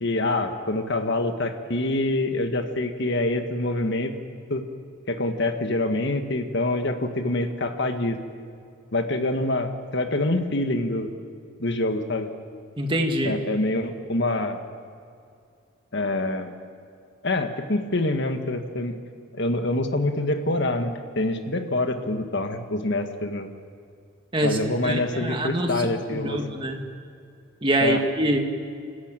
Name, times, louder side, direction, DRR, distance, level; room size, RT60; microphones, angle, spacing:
voice 1, 0.0-4.1 4.5-4.6 5.1-8.2 8.9-11.1 11.6-12.3 13.2-14.6 15.9-16.5 17.2-19.0 19.3-23.5 24.4-26.4 27.8-28.0, left 2 dB, 55° left, 6 dB, 1.6 m, -26 dB
voice 2, 12.8-13.4 24.3-24.6 24.8-26.8 27.6-28.4, right 1 dB, 25° right, 3 dB, 1.9 m, -25 dB
26.0 x 14.5 x 9.0 m, 2.4 s
head